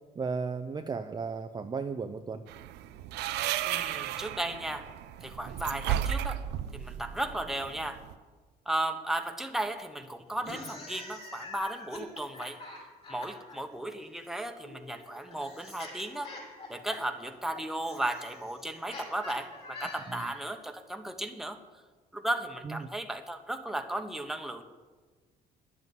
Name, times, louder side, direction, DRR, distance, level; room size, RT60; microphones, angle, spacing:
voice 1, 0.2-2.5 20.1-20.3 22.6-22.9, right 5 dB, 25° right, 7 dB, 0.6 m, -35 dB
sound 1, 2.5-8.1, right 11 dB, 85° right, 0.7 m, -34 dB
voice 2, 3.6-4.9 5.2-6.4 6.7-8.0 8.6-12.6 13.1-16.3 16.7-21.6 22.1-24.6, right 1 dB, ahead, 5 dB, 1.2 m, -35 dB
sound 2, 10.3-13.6 14.6-20.5, left 2 dB, 35° left, 5.4 m, -46 dB
11.0 x 8.1 x 9.4 m, 1.4 s
cardioid pair, 110°, 17 cm